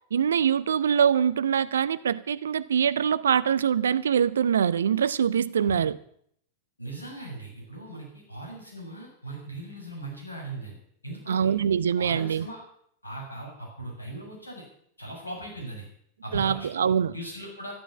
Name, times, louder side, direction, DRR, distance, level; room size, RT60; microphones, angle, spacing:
voice 1, 0.1-6.0 11.3-12.5 16.3-17.1, right 8 dB, 65° right, 0.7 m, -24 dB
voice 2, 6.8-10.8 11.0-11.5 11.9-12.6 13.0-14.6 15.0-15.9 16.2-17.7, right 1 dB, 80° left, 7.3 m, -39 dB
13.5 x 12.5 x 7.2 m
figure-of-eight pair, 90°, 0 cm